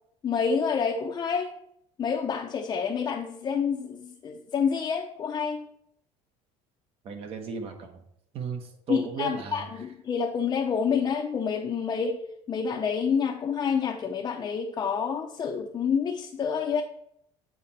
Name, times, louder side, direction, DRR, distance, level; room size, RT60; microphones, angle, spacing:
voice 1, 0.2-1.5 2.0-5.7 8.9-12.2 12.5-16.8, left 6 dB, 30° left, 1 dB, 0.6 m, -28 dB
voice 2, 7.0-7.9 8.3-9.7, right 5 dB, 45° right, 6 dB, 1.1 m, -35 dB
8.2 x 4.4 x 4.1 m, 0.73 s
cardioid pair, 135°, 14 cm